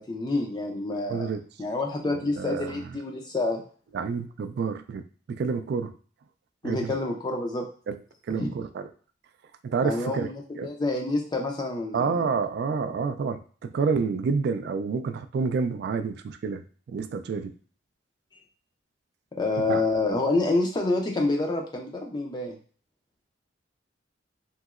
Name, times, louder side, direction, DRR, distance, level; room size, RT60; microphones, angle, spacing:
voice 1, 0.0-3.6 6.6-7.7 8.3-8.5 9.8-12.2 19.4-22.6, left 2 dB, 25° left, 1 dB, 0.4 m, -28 dB
voice 2, 1.1-1.4 2.4-2.8 3.9-5.0 5.3-5.9 6.6-6.9 7.9-8.0 8.3-8.9 9.6-10.3 10.6-10.7 11.9-17.5 19.7-19.8, right 5 dB, 60° right, 10 dB, 0.3 m, -28 dB
2.9 x 2.8 x 2.4 m, 0.42 s
head